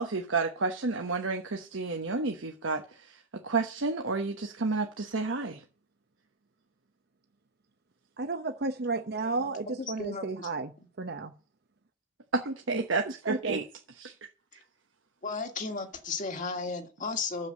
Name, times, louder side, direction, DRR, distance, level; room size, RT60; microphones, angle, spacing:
voice 1, 0.0-2.8 3.4-5.6 12.3-13.6 14.0-14.1, right 3 dB, 80° right, 1.1 m, -30 dB
voice 2, 8.2-10.7 11.0-11.3 12.7-12.8 13.2-13.6, right 3 dB, 55° right, 0.8 m, -32 dB
voice 3, 9.8-10.5 10.8-10.9 15.2-17.5, left 4 dB, 45° left, 1.7 m, -35 dB
9.0 x 7.4 x 7.7 m
head